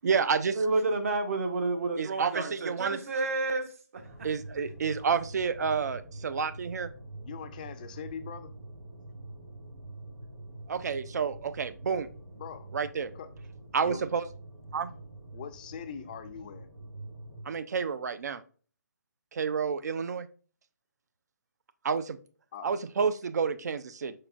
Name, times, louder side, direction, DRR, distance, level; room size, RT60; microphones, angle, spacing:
voice 1, 0.0-0.6 2.0-3.0 4.2-6.9 10.7-12.1 12.7-13.1 13.7-14.3 14.7-14.9 17.5-18.4 19.3-20.3 21.8-22.2 22.6-24.1, right 6 dB, 65° right, 0.4 m, -29 dB
voice 2, 0.5-4.0, right 3 dB, 50° right, 0.8 m, -30 dB
sound 1, 4.0-17.4, right 2 dB, 85° right, 2.1 m, -46 dB
voice 3, 7.2-8.5 12.4-12.7 13.1-13.3 13.8-14.0 15.3-16.7 22.5-22.7, left 7 dB, 25° left, 0.3 m, -41 dB
4.7 x 4.2 x 2.4 m
hypercardioid pair, 160°, 10 cm